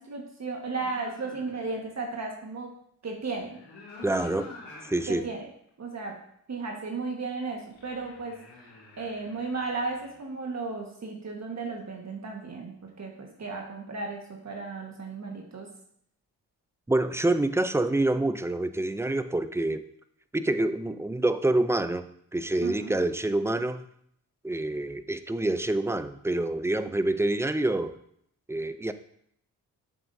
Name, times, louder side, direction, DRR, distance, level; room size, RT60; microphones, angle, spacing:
voice 1, 0.0-2.7 3.0-3.6 5.1-5.5 5.8-6.2 6.5-8.4 9.0-15.7 22.6-22.9, right 3 dB, 45° right, 1 dB, 1.6 m, -35 dB
sound 1, 0.8-1.9 3.3-5.2 5.7-5.8 7.7-10.3, left 3 dB, 90° left, 2.9 m, -47 dB
voice 2, 4.0-4.5 4.9-5.2 16.9-19.8 20.3-22.0 22.3-23.8 24.4-28.0 28.5-28.9, right 2 dB, 5° right, 11 dB, 0.5 m, -27 dB
7.7 x 7.4 x 2.7 m, 0.69 s
cardioid pair, 65°, 37 cm